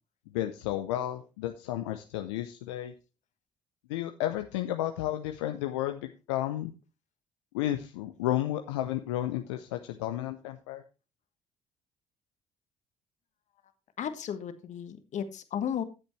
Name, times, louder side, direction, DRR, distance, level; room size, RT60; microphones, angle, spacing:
voice 1, 0.3-2.9 3.9-6.7 7.5-10.8, left 13 dB, 80° left, 7 dB, 0.7 m, -32 dB
voice 2, 14.0-15.8, left 8 dB, 55° left, 9 dB, 1.5 m, -34 dB
15.0 x 7.9 x 3.2 m, 0.30 s
hypercardioid pair, 50°, 15 cm